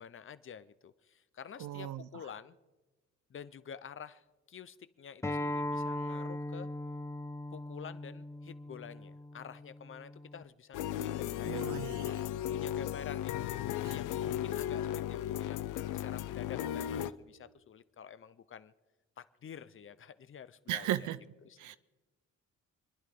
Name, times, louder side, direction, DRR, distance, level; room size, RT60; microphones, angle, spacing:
voice 1, 0.0-2.6 3.3-6.7 7.5-11.6 12.5-18.7 19.2-21.1 21.4-21.8, left 8 dB, 45° left, 0.7 m, -49 dB
voice 2, 1.6-2.0 11.5-12.2 13.9-14.0 20.7-21.2 21.6-21.8, right 13 dB, 80° right, 0.6 m, -36 dB
Acoustic guitar, 5.2-10.4, left 1 dB, 10° left, 0.7 m, -39 dB
sound 1, 10.7-17.1, left 11 dB, 85° left, 0.6 m, -35 dB
28.5 x 10.5 x 3.8 m
cardioid pair, 90°, 30 cm